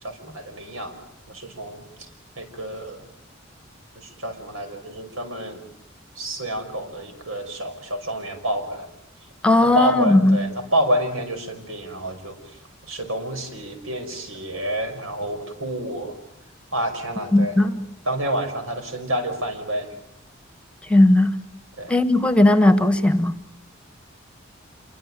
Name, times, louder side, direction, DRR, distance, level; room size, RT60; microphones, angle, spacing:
voice 1, 0.0-0.9 1.3-2.1 2.4-3.1 4.0-5.6 6.2-8.9 9.7-12.4 12.9-16.1 16.7-17.6 18.1-19.9 21.8-21.9, right 1 dB, 80° right, 7 dB, 5.6 m, -28 dB
voice 2, 9.4-10.4 17.3-17.9 20.9-21.3 21.9-23.4, left 1 dB, 5° left, 12 dB, 1.3 m, -17 dB
27.5 x 24.0 x 9.0 m, 0.71 s
head